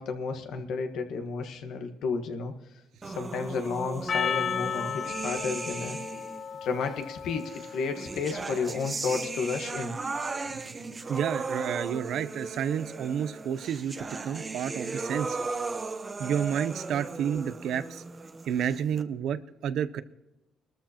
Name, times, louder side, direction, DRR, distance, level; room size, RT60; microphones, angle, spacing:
voice 1, 0.0-2.5 3.0-6.0 6.6-9.9, left 5 dB, 80° left, 6 dB, 1.3 m, -32 dB
sound 1, 3.0-6.5 7.5-19.0, right 3 dB, 30° right, 1.0 m, -37 dB
Percussion, 4.1-8.7, left 7 dB, 45° left, 0.4 m, -34 dB
voice 2, 10.5-13.9 14.2-15.4 16.2-18.0 18.5-20.0, right 8 dB, 75° right, 14 dB, 0.6 m, -30 dB
22.5 x 13.5 x 2.9 m, 0.93 s
cardioid pair, 90°, 0 cm